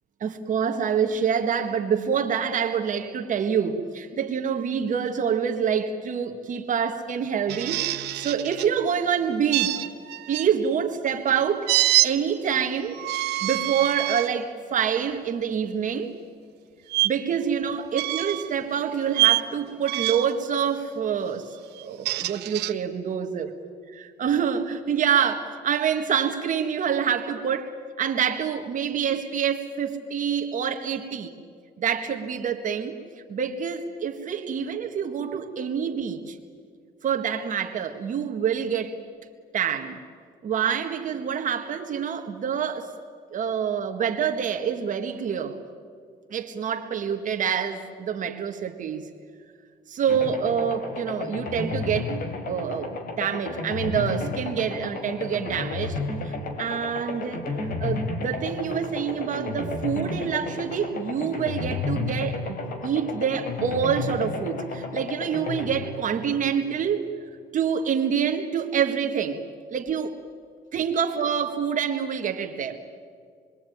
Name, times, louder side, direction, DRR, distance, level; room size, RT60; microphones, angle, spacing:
voice 1, 0.2-9.9 10.3-11.7 12.0-13.0 13.4-16.1 17.0-21.6 21.8-23.5 23.9-27.7 28.0-31.3 31.8-33.0 33.3-36.4 37.0-39.0 39.5-40.0 40.4-42.9 43.3-45.6 46.3-49.1 49.9-52.2 52.5-56.0 56.2-57.5 57.8-67.1 67.5-69.4 69.7-70.1 70.7-72.8, right 7 dB, 50° right, 5 dB, 1.8 m, -26 dB
sound 1, 7.5-8.7 9.5-10.5 11.7-12.1 12.9-14.3 14.9-15.1 16.9-17.1 17.9-18.5 19.1-19.4 19.9-20.4 21.8-22.7, right 17 dB, 85° right, 1.2 m, -25 dB
sound 2, 50.1-67.0, left 3 dB, 60° left, 4.1 m, -32 dB
28.0 x 22.0 x 9.3 m, 2.2 s
cardioid pair, 110°, 17 cm